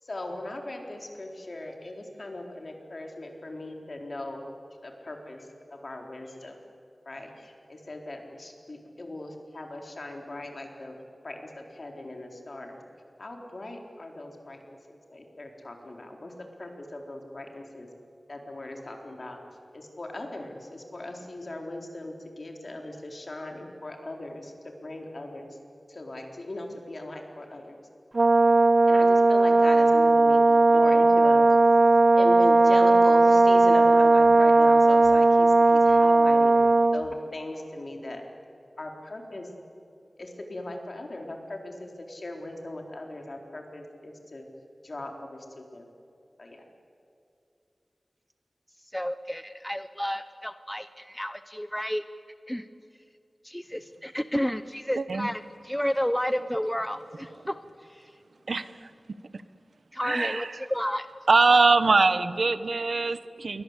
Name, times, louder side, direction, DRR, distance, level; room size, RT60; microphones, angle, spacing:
voice 1, 0.0-4.4 4.8-6.6 7.0-10.9 11.2-12.8 13.2-14.6 14.9-16.3 16.6-17.9 18.3-19.4 19.7-25.6 25.9-27.8 28.9-30.4 30.7-31.4 32.2-36.6 36.9-38.2 38.8-39.5 40.2-44.4 44.8-45.9 46.4-46.6, left 1 dB, 55° left, 2 dB, 4.2 m, -38 dB
Brass instrument, 28.1-37.0, right 2 dB, 55° right, 0.8 m, -18 dB
voice 2, 48.9-52.0 52.5-52.7 53.4-57.6 57.9-58.1 59.9-61.1, equal, 5° left, 11 dB, 0.8 m, -31 dB
voice 3, 55.0-55.3 58.5-58.7 60.0-60.5 61.3-63.6, right 3 dB, 80° right, 12 dB, 1.1 m, -22 dB
28.5 x 23.5 x 8.3 m, 2.6 s
wide cardioid pair, 80°, 0 cm